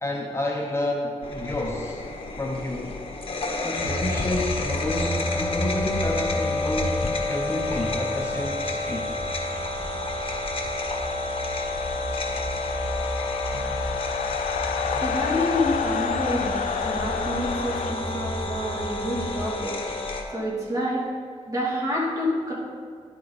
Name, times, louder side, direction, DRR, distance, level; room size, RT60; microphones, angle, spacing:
voice 1, 0.0-2.1 2.4-3.0 3.6-7.0 7.3-9.1, left 1 dB, 20° left, 0 dB, 0.9 m, -30 dB
sound 1, 1.2-20.2, left 2 dB, 45° left, 1.3 m, -30 dB
sound 2, 3.7-19.5, equal, 60° right, 2.6 m, -35 dB
sound 3, 10.2-17.9, left 9 dB, 85° left, 0.4 m, -32 dB
voice 2, 15.0-16.6 16.8-19.8 20.3-21.1 21.5-22.5, left 1 dB, 25° right, -5 dB, 2.8 m, -28 dB
10.5 x 8.3 x 4.1 m, 2.1 s
wide cardioid pair, 100°, 13 cm